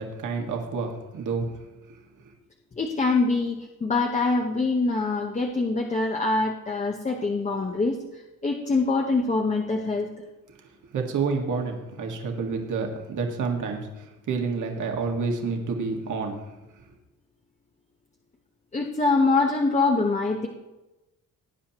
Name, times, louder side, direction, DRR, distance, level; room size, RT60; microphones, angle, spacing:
voice 1, 0.0-1.5 10.9-16.4, right 4 dB, 60° right, 2 dB, 1.8 m, -29 dB
voice 2, 2.8-10.1 18.7-20.5, left 3 dB, 20° left, 1 dB, 0.9 m, -24 dB
18.5 x 9.7 x 3.0 m, 1.0 s
cardioid pair, 150°, 34 cm